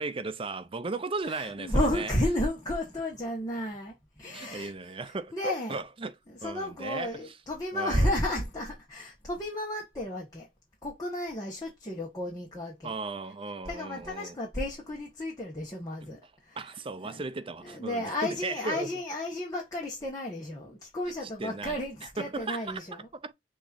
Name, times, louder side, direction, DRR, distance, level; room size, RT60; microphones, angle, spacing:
voice 1, 0.0-2.1 4.3-6.1 6.4-7.2 7.7-8.1 12.8-14.4 16.0-16.1 16.6-18.9 21.4-23.3, right 3 dB, 30° right, 0.6 m, -36 dB
voice 2, 1.2-4.7 5.3-5.8 6.3-10.5 10.8-12.9 13.6-16.6 17.0-17.2 17.6-23.1, left 1 dB, 20° left, 1.5 m, -32 dB
6.5 x 3.0 x 2.6 m
head